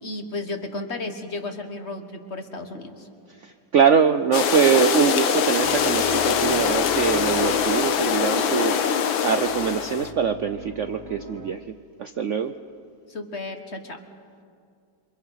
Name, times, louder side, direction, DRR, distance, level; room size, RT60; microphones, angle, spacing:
voice 1, 0.0-3.1 13.1-14.0, left 2 dB, 35° left, 6 dB, 1.7 m, -33 dB
voice 2, 3.4-8.8 9.2-11.6 12.0-12.5, right 7 dB, 90° right, 8 dB, 0.6 m, -23 dB
sound 1, 4.3-10.1, left 7 dB, 80° left, 1.8 m, -23 dB
sound 2, 5.6-11.5, left 1 dB, 15° left, 0.6 m, -40 dB
28.5 x 25.0 x 5.7 m, 2.3 s
omnidirectional pair, 2.2 m